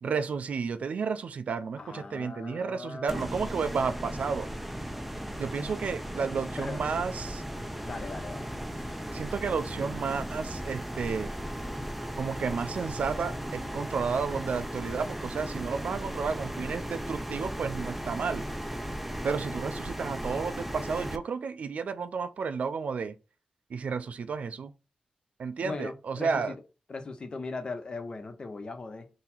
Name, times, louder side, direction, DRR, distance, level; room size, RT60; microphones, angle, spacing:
voice 1, 0.0-4.5 5.4-7.4 9.1-11.3 12.2-18.5 19.2-23.2 23.7-24.7 25.4-26.5, right 5 dB, 65° right, 0.4 m, -32 dB
voice 2, 1.8-3.4 6.6-6.8 7.8-8.5 25.6-26.6 26.9-29.1, left 3 dB, 40° left, 0.6 m, -39 dB
sound 1, 3.1-21.2, equal, 5° right, 0.4 m, -36 dB
3.9 x 2.8 x 4.2 m
wide cardioid pair, 150°, 3 cm